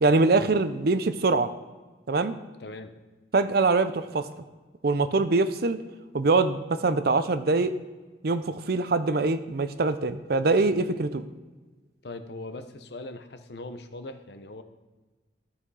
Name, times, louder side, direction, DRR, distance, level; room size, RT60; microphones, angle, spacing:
voice 1, 0.0-1.5 2.1-2.3 3.3-4.3 4.8-5.8 6.1-7.7 8.2-11.2, right 3 dB, 55° right, 12 dB, 0.6 m, -23 dB
voice 2, 2.6-2.9 12.0-14.6, left 2 dB, 65° left, 9 dB, 0.8 m, -40 dB
12.5 x 5.7 x 4.8 m, 1.3 s
head